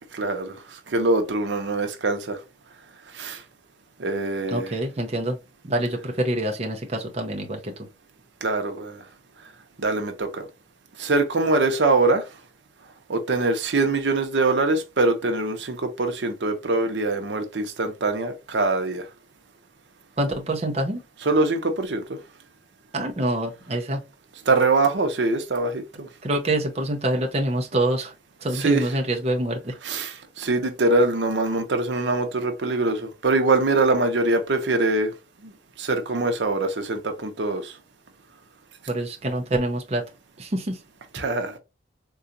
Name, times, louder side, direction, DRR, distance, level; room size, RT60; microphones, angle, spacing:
voice 1, 0.1-2.4 3.1-3.4 4.0-4.8 8.4-9.0 9.8-10.5 11.0-12.2 13.1-19.1 21.2-22.2 24.5-26.1 28.5-29.0 29.8-35.1 35.4-35.5 35.8-37.7 41.1-41.5, right 3 dB, 85° right, 0.7 m, -23 dB
voice 2, 4.5-5.4 5.6-7.7 20.2-21.0 22.9-24.0 26.2-28.1 28.4-29.7 38.9-40.0 40.4-40.8, right 1 dB, 35° right, 0.6 m, -26 dB
3.8 x 2.3 x 2.6 m
head